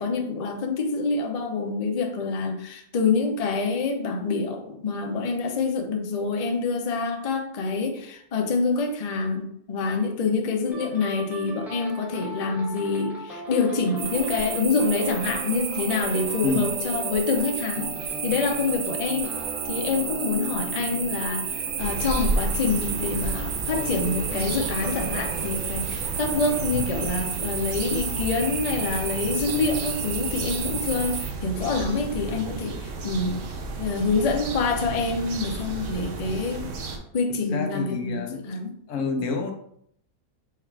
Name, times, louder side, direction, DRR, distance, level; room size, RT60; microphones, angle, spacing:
voice 1, 0.0-19.3 19.6-33.4 33.8-36.7 37.1-38.8, left 4 dB, 85° left, 2 dB, 0.3 m, -26 dB
sound 1, 10.7-29.2 30.0-30.3, equal, ahead, 0.4 m, -39 dB
sound 2, 14.0-31.3, right 8 dB, 80° right, 1.2 m, -32 dB
sound 3, 21.8-37.0, right 3 dB, 60° right, 0.9 m, -33 dB
voice 2, 37.5-38.4 38.9-39.5, left 4 dB, 60° left, 4 dB, 1.0 m, -28 dB
4.7 x 2.4 x 4.5 m, 0.68 s
omnidirectional pair, 1.7 m